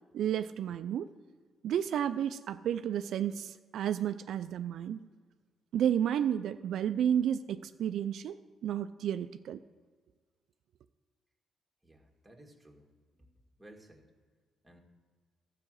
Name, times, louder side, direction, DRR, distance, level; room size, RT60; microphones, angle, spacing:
voice 1, 0.1-1.1 1.6-5.0 5.7-9.6, right 9 dB, 75° right, 10 dB, 0.3 m, -32 dB
voice 2, 11.8-12.9 13.1-14.1 14.6-14.8, right 1 dB, 5° right, 0 dB, 1.9 m, -57 dB
12.5 x 4.9 x 7.8 m, 1.5 s
cardioid pair, 90°, 0 cm